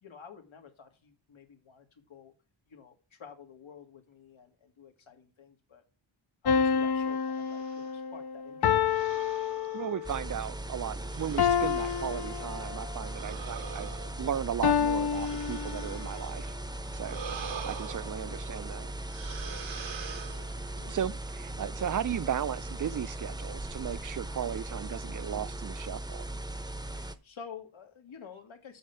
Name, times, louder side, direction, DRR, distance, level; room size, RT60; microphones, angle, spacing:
voice 1, 0.0-2.3 2.7-5.8 6.4-9.1 16.0-16.1 17.1-17.2 18.2-18.5 19.6-19.7 20.5-21.0 27.0-28.8, left 6 dB, 85° left, 1.9 m, -50 dB
sound 1, 6.4-10.2 11.4-13.0 14.6-16.2, left 7 dB, 55° left, 0.6 m, -29 dB
sound 2, 7.2-7.9 8.8-10.5 11.1-12.4 13.1-16.5 17.0-18.7 19.1-20.8, right 7 dB, 75° right, 1.2 m, -44 dB
voice 2, 9.7-13.9 14.2-16.5 16.9-17.2 17.6-18.9 20.9-26.2, right 9 dB, 45° right, 0.4 m, -35 dB
sound 3, 10.0-27.2, right 1 dB, 10° right, 0.7 m, -38 dB
7.9 x 4.6 x 6.9 m
wide cardioid pair, 110°, 46 cm